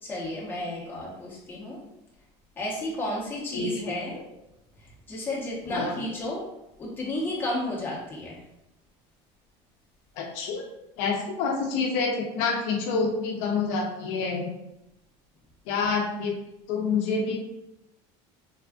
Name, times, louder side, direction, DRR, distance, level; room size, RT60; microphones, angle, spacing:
voice 1, 0.0-1.8 2.6-4.2 5.1-6.4 6.8-8.4, left 1 dB, 15° left, -6 dB, 0.8 m, -32 dB
voice 2, 10.2-10.6 11.0-14.5 15.7-16.3 16.7-17.4, left 4 dB, 70° left, 1 dB, 0.5 m, -27 dB
3.3 x 2.4 x 2.3 m, 0.87 s
cardioid pair, 150°, 14 cm